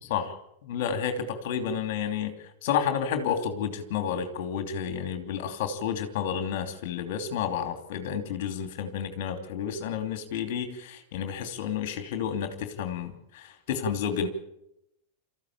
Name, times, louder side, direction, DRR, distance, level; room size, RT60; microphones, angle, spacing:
voice 1, 0.0-0.4 0.6-14.3, left 8 dB, 50° left, 8 dB, 3.0 m, -31 dB
26.0 x 14.5 x 8.6 m, 0.86 s
figure-of-eight pair, 90°, 0 cm